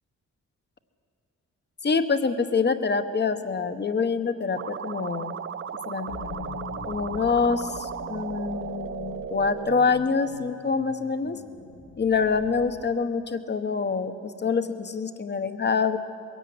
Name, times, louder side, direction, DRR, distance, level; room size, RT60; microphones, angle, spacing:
voice 1, 1.8-5.4 5.9-6.1 6.9-11.4 12.0-16.0, left 5 dB, 35° left, 10 dB, 1.1 m, -26 dB
sound 1, 4.5-9.8, right 8 dB, 45° right, 0.5 m, -35 dB
sound 2, 6.1-13.0, left 4 dB, 70° left, 1.7 m, -42 dB
21.5 x 16.5 x 9.5 m, 2.6 s
wide cardioid pair, 135°, 30 cm